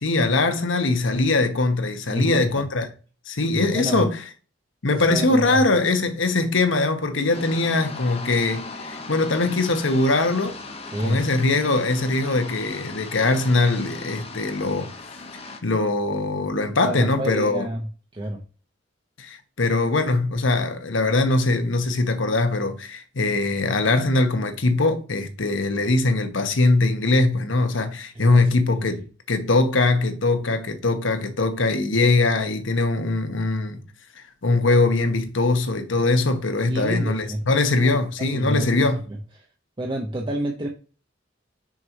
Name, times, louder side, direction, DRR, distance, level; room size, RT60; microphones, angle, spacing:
voice 1, 0.0-2.9 3.3-4.2 4.8-10.6 11.0-14.9 15.6-17.7 19.2-33.8 34.4-39.0, left 2 dB, 75° left, 1.0 m, -22 dB
voice 2, 2.1-2.6 3.5-4.1 4.9-5.6 10.9-11.2 16.8-17.9 18.1-18.4 28.1-28.4 28.7-28.9 36.7-37.4 37.8-39.5 39.8-40.7, right 1 dB, 25° right, 0.8 m, -29 dB
sound 1, 7.3-15.6, left 3 dB, 30° left, 1.0 m, -38 dB
6.3 x 3.0 x 5.2 m
head